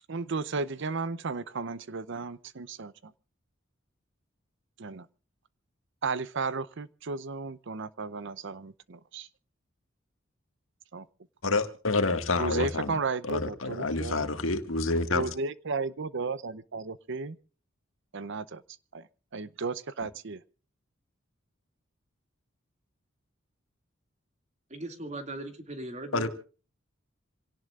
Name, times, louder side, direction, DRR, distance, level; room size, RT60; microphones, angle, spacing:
voice 1, 0.1-3.1 4.8-5.1 6.0-9.3 10.9-11.1 12.4-14.3 15.1-17.4 18.1-18.6 18.9-19.1 19.3-20.4, right 4 dB, 65° right, 0.7 m, -34 dB
voice 2, 11.4-13.0 13.3-15.3 26.1-26.3, left 3 dB, 85° left, 1.9 m, -28 dB
voice 3, 24.7-26.3, right 2 dB, 35° right, 2.3 m, -39 dB
27.0 x 17.5 x 2.4 m
head